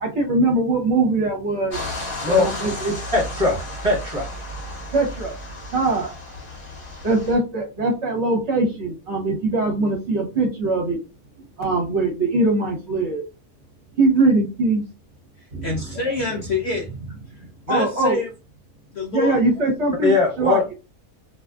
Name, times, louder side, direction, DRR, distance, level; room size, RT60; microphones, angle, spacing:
voice 1, 0.0-1.8 2.3-2.9 4.9-5.3 5.7-6.1 7.0-11.0 11.6-13.2 14.0-14.8 15.5-15.7 17.7-18.2 19.1-20.7, right 2 dB, 50° right, 0 dB, 1.0 m, -21 dB
sound 1, 1.7-7.3, left 1 dB, 45° left, 0.8 m, -33 dB
voice 2, 3.1-4.3 20.0-20.7, left 3 dB, 25° right, -2 dB, 1.2 m, -20 dB
voice 3, 15.4-16.9 17.3-18.3 18.9-19.4, left 3 dB, 75° left, 1 dB, 0.6 m, -27 dB
2.7 x 2.4 x 2.3 m, 0.28 s
omnidirectional pair, 1.7 m